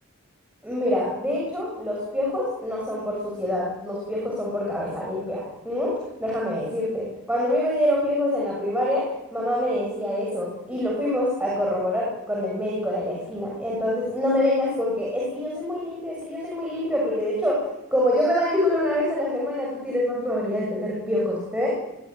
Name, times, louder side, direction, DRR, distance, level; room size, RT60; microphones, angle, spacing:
voice 1, 0.6-5.9 6.2-9.0 9.3-17.6 17.9-21.7, left 1 dB, 5° right, -4 dB, 7.1 m, -25 dB
23.0 x 22.0 x 9.1 m, 0.98 s
head